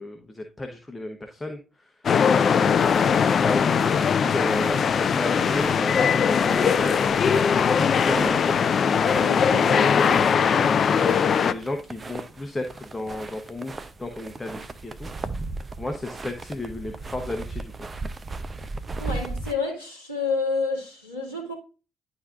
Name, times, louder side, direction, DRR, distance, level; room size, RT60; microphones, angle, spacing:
voice 1, 0.0-1.9 2.4-9.0 9.5-9.9 11.3-15.1 15.8-17.6, left 2 dB, 15° left, 1.1 m, -33 dB
sound 1, 2.0-11.5, left 7 dB, 45° left, 0.4 m, -20 dB
sound 2, 2.6-19.5, right 3 dB, 30° right, 0.7 m, -37 dB
voice 2, 19.0-21.5, left 4 dB, 90° right, 2.1 m, -30 dB
11.0 x 4.0 x 2.5 m
figure-of-eight pair, 45°, 0 cm